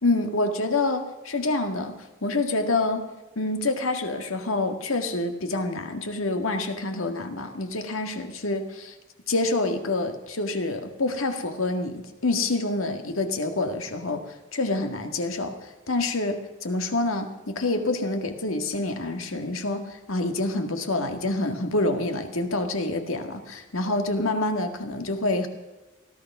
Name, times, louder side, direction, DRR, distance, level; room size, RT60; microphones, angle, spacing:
voice 1, 0.0-3.1 3.4-8.9 9.3-14.2 14.5-25.5, left 2 dB, 90° left, 6 dB, 1.9 m, -27 dB
17.5 x 12.0 x 6.0 m, 1.1 s
head